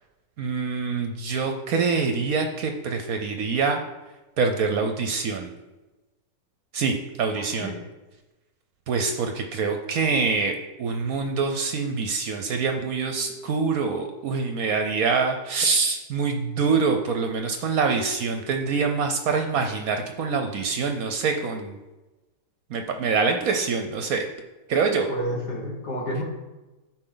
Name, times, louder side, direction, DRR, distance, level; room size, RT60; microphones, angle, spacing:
voice 1, 0.4-3.8 4.4-5.5 6.7-7.7 8.9-21.8 22.7-24.3 24.7-25.1, right 4 dB, 65° right, 5 dB, 1.0 m, -25 dB
voice 2, 7.3-7.8 25.1-26.2, equal, 70° left, -1 dB, 2.1 m, -30 dB
12.0 x 4.5 x 3.9 m, 1.1 s
omnidirectional pair, 1.9 m